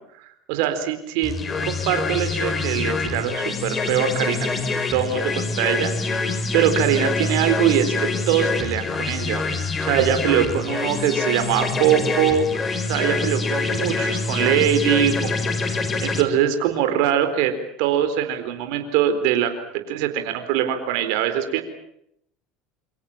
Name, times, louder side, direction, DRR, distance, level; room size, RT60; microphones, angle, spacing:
voice 1, 0.5-1.3 1.6-5.9 6.5-15.3 15.6-17.5 17.8-21.6, right 10 dB, 70° right, 8 dB, 4.2 m, -22 dB
sound 1, 1.2-16.2, left 3 dB, 30° left, 4.9 m, -25 dB
27.5 x 25.5 x 7.3 m, 0.75 s
hypercardioid pair, 90°, 0 cm